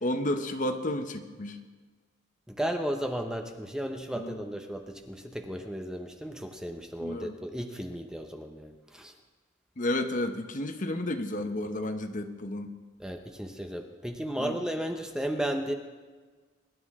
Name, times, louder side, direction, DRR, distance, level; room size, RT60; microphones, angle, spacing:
voice 1, 0.0-1.6 4.1-4.4 7.0-7.4 9.8-12.7 14.4-14.6, left 1 dB, 40° left, 6 dB, 0.9 m, -31 dB
voice 2, 2.5-9.1 13.0-15.7, equal, 5° right, 4 dB, 0.9 m, -34 dB
22.5 x 11.5 x 3.7 m, 1.4 s
head